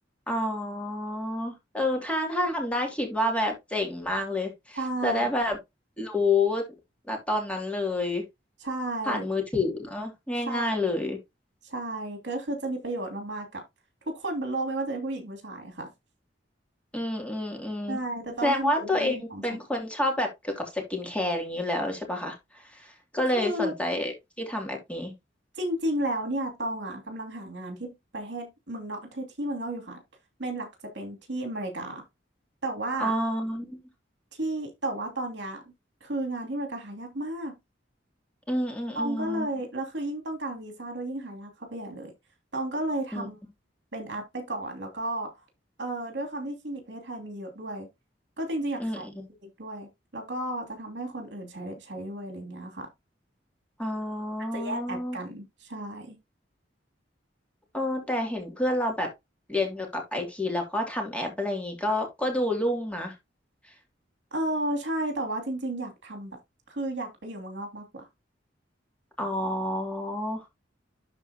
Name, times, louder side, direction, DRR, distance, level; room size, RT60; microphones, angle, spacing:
voice 1, 0.3-5.6 6.0-6.6 7.1-8.2 9.0-11.2 16.9-18.0 18.4-25.1 33.0-33.8 38.5-39.5 43.1-43.3 48.8-49.2 53.8-55.2 57.7-59.1 59.5-63.1 69.2-70.4, left 1 dB, 5° left, 2.7 m, -29 dB
voice 2, 4.8-5.3 8.6-9.2 10.4-11.0 11.6-13.6 14.1-15.9 17.9-19.4 23.3-23.7 25.6-30.0 30.4-30.7 30.9-32.0 32.6-33.1 34.3-35.6 36.0-37.6 38.9-42.1 42.5-43.4 43.9-45.3 45.8-47.9 48.4-49.1 49.4-52.9 54.5-56.2 64.3-66.4 66.7-68.0, right 1 dB, 70° right, 2.7 m, -33 dB
12.5 x 4.3 x 2.8 m
head